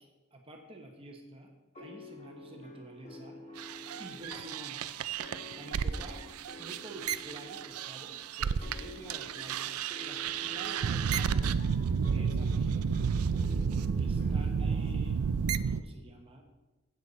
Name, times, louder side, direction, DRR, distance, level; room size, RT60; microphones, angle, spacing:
voice 1, 0.0-5.1 5.6-11.7 12.0-13.0 13.9-16.4, right 1 dB, 25° right, 2 dB, 1.1 m, -49 dB
sound 1, 1.7-15.5, left 2 dB, 30° left, 1.6 m, -50 dB
sound 2, 3.6-8.8 9.1-15.8, right 6 dB, 80° right, 0.4 m, -31 dB
10.5 x 8.3 x 4.1 m, 1.1 s
head